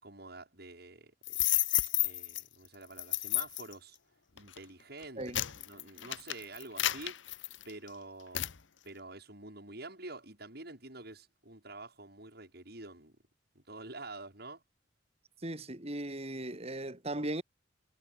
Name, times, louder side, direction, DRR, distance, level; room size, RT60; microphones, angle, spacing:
voice 1, 0.0-1.1 2.0-4.0 4.3-5.2 5.5-7.2 7.6-8.4 8.8-13.2 13.6-14.6, right 2 dB, 55° right, 7.3 m, -47 dB
sound 1, 1.2-2.4 3.0-3.7 4.4-4.6 5.0-7.9 8.3-8.6, left 15 dB, 80° left, 1.1 m, -31 dB
voice 2, 15.4-17.4, right 1 dB, 35° right, 3.3 m, -37 dB
head